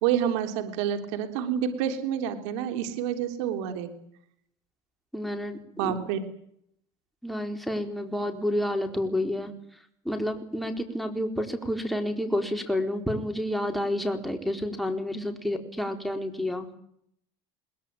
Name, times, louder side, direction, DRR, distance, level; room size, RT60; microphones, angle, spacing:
voice 1, 0.0-3.9 5.8-6.2, right 9 dB, 85° right, 7 dB, 3.6 m, -28 dB
voice 2, 5.1-6.0 7.2-9.5 10.0-16.7, left 1 dB, ahead, 4 dB, 4.2 m, -29 dB
22.5 x 21.0 x 9.1 m, 0.70 s
supercardioid pair, 120°, 15 cm